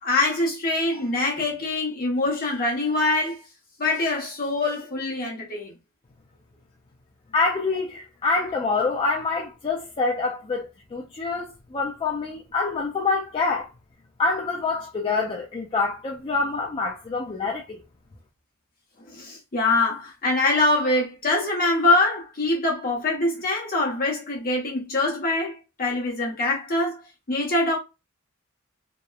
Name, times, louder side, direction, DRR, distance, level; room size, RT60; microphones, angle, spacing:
voice 1, 0.0-3.4 3.8-5.7 19.1-27.8, left 2 dB, 45° left, 0.9 m, -24 dB
voice 2, 7.3-13.7 14.2-17.8, left 4 dB, 25° left, 0.3 m, -26 dB
2.9 x 2.0 x 2.3 m
head